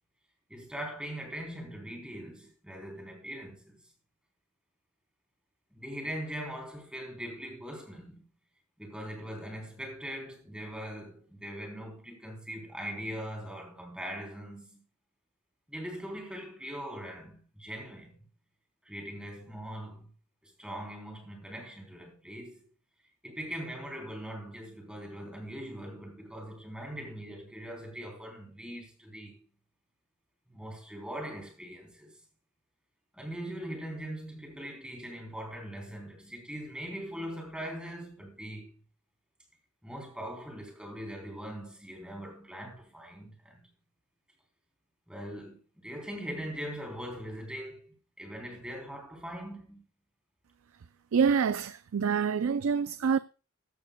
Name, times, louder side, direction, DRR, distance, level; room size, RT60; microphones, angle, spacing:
voice 1, 0.5-3.8 5.7-8.2 8.8-14.8 15.7-18.1 18.8-20.1 20.4-22.7 23.2-29.4 30.5-32.2 33.1-38.8 39.8-43.6 45.1-49.9, equal, 5° right, 3.4 m, -41 dB
voice 2, 51.1-53.2, right 6 dB, 75° right, 0.4 m, -26 dB
15.0 x 12.0 x 2.2 m
head